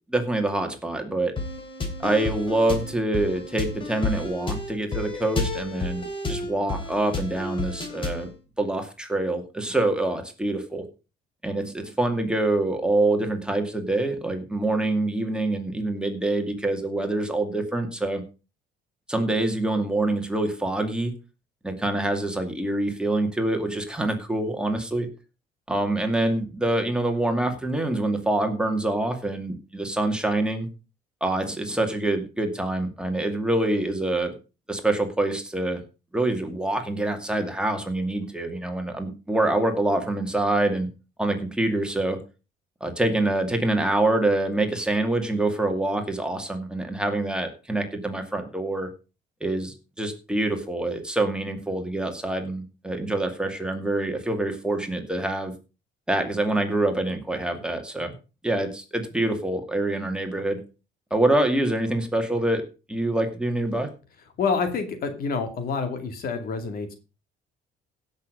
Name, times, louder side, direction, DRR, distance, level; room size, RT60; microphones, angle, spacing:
voice 1, 0.1-1.3 2.0-8.3 8.6-10.8 11.4-18.2 19.1-21.1 21.6-25.1 25.7-30.7 31.2-34.4 34.7-35.8 36.1-40.9 41.2-42.2 42.8-48.9 49.4-55.5 56.1-58.1 58.4-60.6 61.1-63.9, right 2 dB, 5° right, 4 dB, 2.3 m, -25 dB
sound 1, 1.4-8.3, left 3 dB, 30° left, 3.5 m, -31 dB
voice 2, 64.4-66.9, left 5 dB, 60° left, 8 dB, 2.4 m, -27 dB
16.0 x 6.7 x 5.2 m, 0.32 s
cardioid pair, 110°, 17 cm